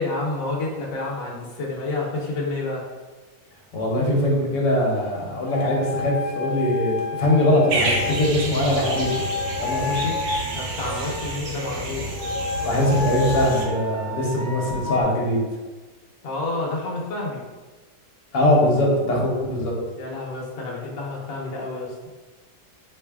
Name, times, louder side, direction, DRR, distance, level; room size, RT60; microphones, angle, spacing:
voice 1, 0.0-2.8 10.5-12.2 16.2-17.4 20.0-22.0, left 2 dB, 60° left, -3 dB, 1.1 m, -29 dB
voice 2, 3.7-9.1 9.6-10.1 12.6-15.4 18.3-19.7, left 1 dB, 80° left, -2 dB, 1.3 m, -21 dB
sound 1, 5.4-8.4 8.8-11.5 12.1-15.0, left 4 dB, 25° right, 0.6 m, -30 dB
sound 2, 7.7-13.7, right 2 dB, 65° right, 0.9 m, -29 dB
4.1 x 3.0 x 2.3 m, 1.3 s
omnidirectional pair, 1.9 m